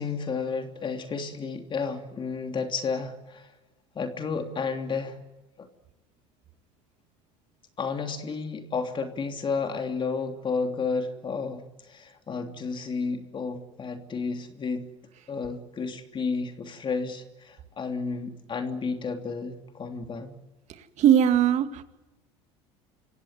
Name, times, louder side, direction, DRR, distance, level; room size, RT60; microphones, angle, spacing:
voice 1, 0.0-3.5 3.9-5.2 5.6-5.7 7.8-14.9 15.3-20.3, left 4 dB, 35° left, 3.1 m, -32 dB
voice 2, 21.0-21.8, right 10 dB, 50° right, 2.3 m, -20 dB
26.5 x 16.5 x 9.5 m
supercardioid pair, 90°, 15 cm